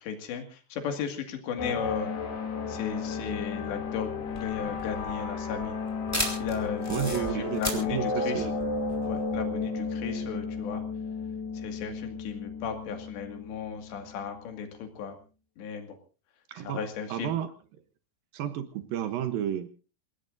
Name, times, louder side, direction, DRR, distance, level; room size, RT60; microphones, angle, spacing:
voice 1, 0.0-2.1 2.7-5.8 6.4-8.5 9.1-10.8 11.5-15.2 15.6-16.0 16.6-17.3, left 6 dB, 90° left, 5 dB, 4.4 m, -35 dB
sound 1, 1.6-14.6, left 4 dB, 70° left, 4.8 m, -33 dB
sound 2, 4.2-9.4, left 1 dB, 5° left, 4.1 m, -35 dB
voice 2, 6.9-8.6 16.5-16.8 17.1-17.5 18.3-19.7, right 10 dB, 70° right, 10 dB, 2.4 m, -32 dB
27.5 x 18.0 x 2.7 m, 0.34 s
omnidirectional pair, 4.9 m